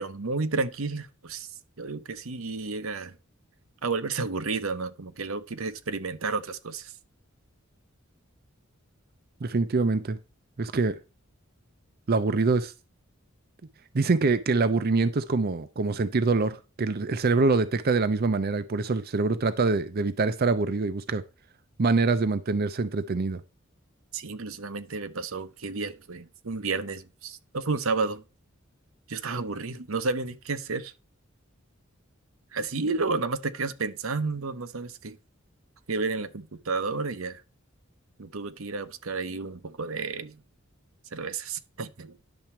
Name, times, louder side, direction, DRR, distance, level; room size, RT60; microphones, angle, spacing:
voice 1, 0.0-1.5 1.8-3.1 3.8-6.9 24.1-28.2 29.1-30.9 32.5-35.2 35.9-37.4 38.2-40.4 41.1-42.1, right 4 dB, 80° right, 0.9 m, -31 dB
voice 2, 9.4-10.2 10.6-11.0 12.1-12.7 13.9-21.2 21.8-23.4, right 3 dB, 50° right, 0.6 m, -25 dB
10.5 x 7.0 x 4.5 m
head